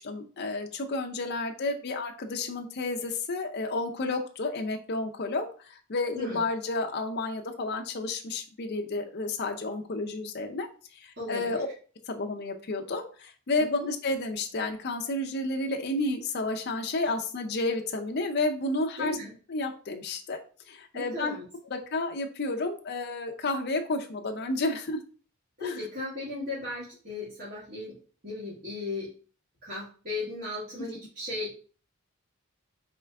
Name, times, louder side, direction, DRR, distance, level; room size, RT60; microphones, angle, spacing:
voice 1, 0.0-11.7 12.1-19.2 19.5-20.4 20.7-21.4 21.7-25.0 25.6-25.8, left 2 dB, 50° left, 3 dB, 0.5 m, -31 dB
voice 2, 11.2-11.6 13.6-13.9 19.0-19.3 20.9-21.4 25.6-27.9 28.2-29.1 29.6-31.6, left 2 dB, 45° right, -9 dB, 1.7 m, -36 dB
4.4 x 3.3 x 3.5 m, 0.40 s
head